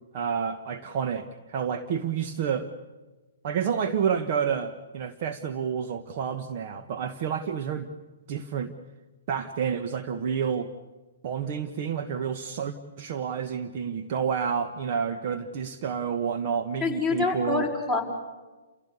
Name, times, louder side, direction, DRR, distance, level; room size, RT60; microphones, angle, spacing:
voice 1, 0.1-2.7 3.4-7.9 8.3-8.7 9.3-10.7 11.2-17.7, right 7 dB, 50° right, 9 dB, 1.4 m, -29 dB
voice 2, 16.8-18.0, left 4 dB, 5° right, 4 dB, 5.5 m, -26 dB
29.5 x 16.5 x 8.4 m, 1.2 s
hypercardioid pair, 135°, 0 cm